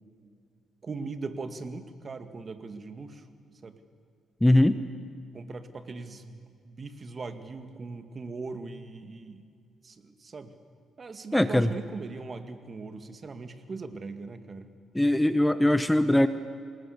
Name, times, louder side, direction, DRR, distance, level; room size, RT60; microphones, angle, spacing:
voice 1, 0.8-3.3 3.6-3.8 5.3-9.5 9.8-10.5 11.0-14.7, right 4 dB, 35° right, 8 dB, 2.0 m, -40 dB
voice 2, 4.4-4.8 11.3-11.7 14.9-16.3, left 1 dB, 5° left, 11 dB, 0.8 m, -21 dB
27.0 x 20.0 x 8.3 m, 2.3 s
cardioid pair, 90°, 0 cm